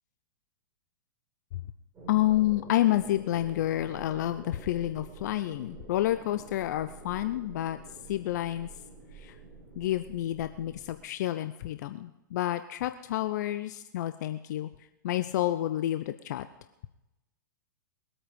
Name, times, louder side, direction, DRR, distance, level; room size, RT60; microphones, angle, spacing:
sound 1, 1.9-11.0, right 3 dB, 20° right, 6.5 m, -48 dB
voice 1, 2.1-7.8 8.1-8.7 9.1-9.3 9.8-14.7 15.0-16.5, left 13 dB, 55° left, 11 dB, 0.7 m, -29 dB
22.0 x 8.7 x 5.2 m, 0.97 s
hypercardioid pair, 110°, 11 cm